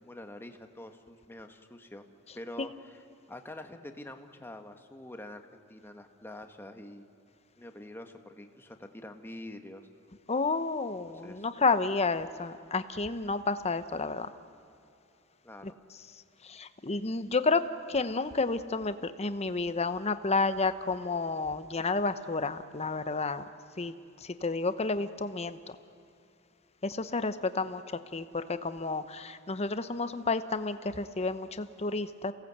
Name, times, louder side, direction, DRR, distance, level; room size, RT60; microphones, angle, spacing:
voice 1, 0.0-2.0 2.3-3.0 3.3-7.0 7.6-9.9 11.2-11.5 15.4-15.8, left 1 dB, 10° left, 6 dB, 1.3 m, -46 dB
voice 2, 10.3-14.3 16.4-23.4 23.8-23.9 24.2-25.8 26.8-32.3, left 3 dB, 30° left, 11 dB, 0.9 m, -31 dB
28.5 x 17.5 x 8.1 m, 2.7 s
head